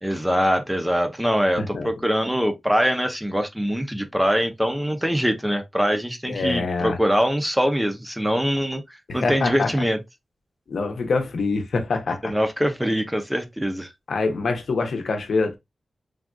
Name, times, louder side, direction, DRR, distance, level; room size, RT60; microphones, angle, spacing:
voice 1, 0.0-8.8 9.1-10.0 12.2-13.9, equal, 5° right, 0.4 m, -23 dB
voice 2, 1.6-1.9 6.3-7.0 9.1-9.7 10.7-12.3 14.1-15.6, left 3 dB, 65° left, 0.7 m, -25 dB
3.4 x 2.2 x 2.4 m
wide cardioid pair, 165°, 0 cm